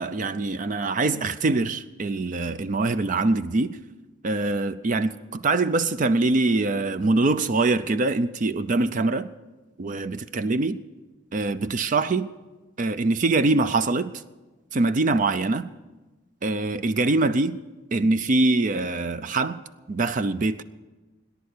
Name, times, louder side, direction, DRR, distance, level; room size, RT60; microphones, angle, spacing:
voice 1, 0.0-3.8 4.2-9.3 9.8-10.8 11.3-12.3 12.8-14.1 14.7-15.7 16.4-17.6 17.9-19.6 19.9-20.6, right 3 dB, 45° right, 13 dB, 0.5 m, -23 dB
18.5 x 10.5 x 6.6 m, 1.2 s
head